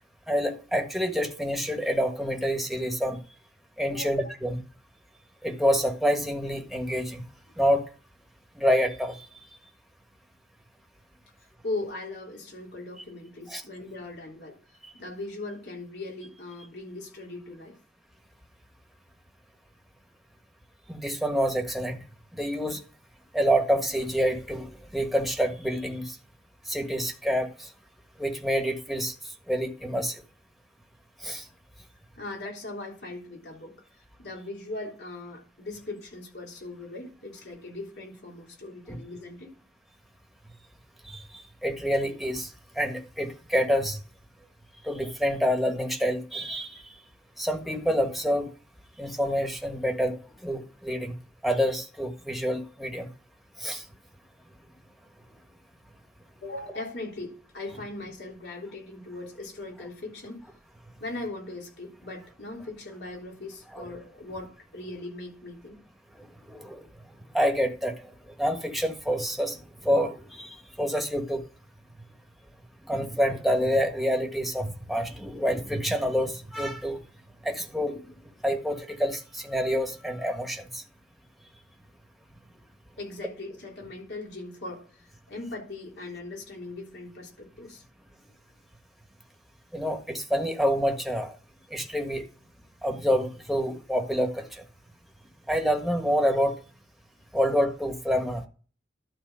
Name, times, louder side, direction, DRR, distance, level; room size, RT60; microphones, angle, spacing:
voice 1, 0.3-3.2 3.8-4.6 5.4-7.2 7.6-7.8 8.5-9.3 13.5-13.6 14.8-14.9 20.9-22.0 22.3-22.8 23.3-26.2 26.7-27.7 28.2-29.1 29.5-30.2 31.2-31.4 38.9-39.0 41.0-44.0 44.8-46.9 47.4-48.5 49.0-51.1 51.4-53.1 53.6-53.8 63.7-63.9 66.2-66.8 67.3-68.1 68.4-71.4 72.8-77.0 77.4-78.1 78.4-80.8 89.7-91.3 91.7-92.2 92.8-94.6 95.5-96.6 97.3-98.4, equal, ahead, 1.4 m, -27 dB
voice 2, 11.6-14.6 14.9-17.7 32.2-33.8 34.2-39.5 56.4-60.4 61.0-65.8 83.0-87.8, left 2 dB, 70° left, 3.5 m, -39 dB
12.0 x 4.4 x 5.6 m
head